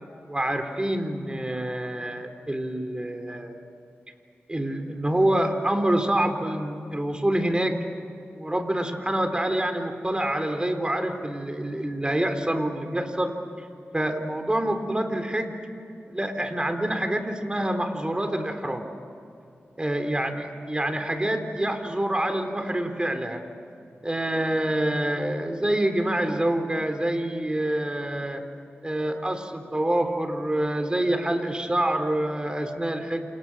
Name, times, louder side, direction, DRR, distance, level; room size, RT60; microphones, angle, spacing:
voice 1, 0.3-3.6 4.5-7.8 8.3-13.3 13.9-15.5 16.1-18.8 19.8-23.4 24.0-28.4 28.8-33.3, right 1 dB, 20° right, 6 dB, 3.8 m, -26 dB
28.5 x 28.0 x 6.3 m, 2.7 s
cardioid pair, 55°, 4 cm